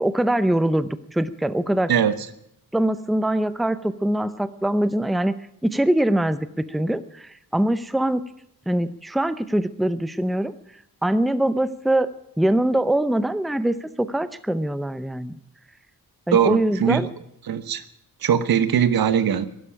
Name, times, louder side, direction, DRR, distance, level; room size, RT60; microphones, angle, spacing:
voice 1, 0.0-1.9 2.7-5.3 5.6-8.2 8.7-10.5 11.0-12.1 12.4-15.3 16.3-17.1, right 1 dB, ahead, 14 dB, 0.6 m, -23 dB
voice 2, 16.3-17.1 17.4-17.8 18.2-19.5, right 8 dB, 80° right, 14 dB, 1.1 m, -20 dB
11.5 x 11.5 x 10.0 m, 0.76 s
wide cardioid pair, 125°, 35 cm